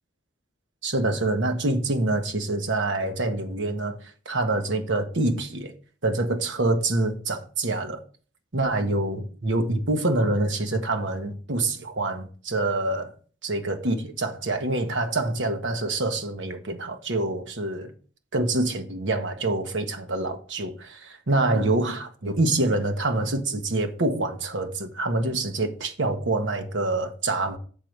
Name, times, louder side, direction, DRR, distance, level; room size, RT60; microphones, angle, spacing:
voice 1, 0.8-5.7 6.0-8.0 8.5-13.1 13.4-17.9 18.3-27.6, right 2 dB, 75° right, 1.2 m, -26 dB
6.9 x 4.6 x 6.6 m
head